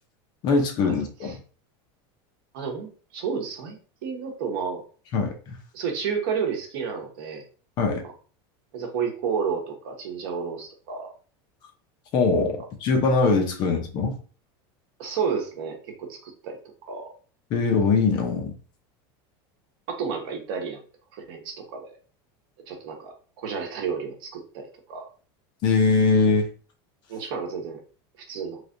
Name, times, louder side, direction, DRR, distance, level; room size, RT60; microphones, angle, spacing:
voice 1, 0.4-1.4 5.1-5.6 7.8-8.0 12.1-14.2 17.5-18.5 25.6-26.5, left 4 dB, 35° left, 3 dB, 0.7 m, -22 dB
voice 2, 2.5-3.8 4.0-4.8 5.7-7.4 8.7-11.1 15.0-16.6 16.9-17.1 19.9-20.8 21.1-22.0 22.7-25.0 27.1-27.8 28.3-28.6, right 6 dB, 65° right, 2 dB, 1.1 m, -31 dB
3.2 x 3.2 x 2.6 m, 0.39 s
supercardioid pair, 170°, 13 cm